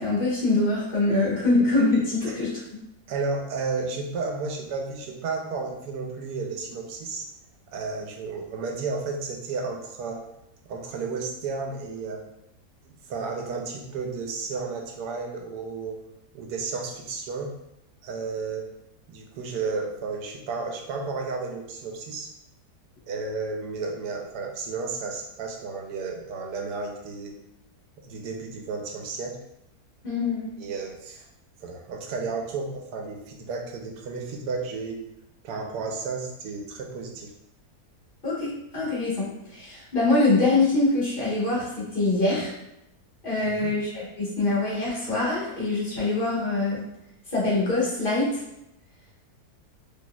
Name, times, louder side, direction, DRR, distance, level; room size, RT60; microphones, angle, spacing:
voice 1, 0.0-2.8 30.0-30.5 38.2-42.5 43.2-46.8 47.3-48.4, left 2 dB, 35° left, -7 dB, 1.3 m, -24 dB
voice 2, 3.1-7.3 7.7-10.2 10.7-12.2 13.1-16.0 16.3-17.6 18.0-18.7 19.1-22.3 23.1-27.4 28.0-29.4 30.6-31.3 31.6-35.0 35.4-37.3 43.3-43.7, right 4 dB, 80° right, 2 dB, 1.2 m, -32 dB
4.1 x 3.1 x 2.2 m, 0.85 s
omnidirectional pair, 1.7 m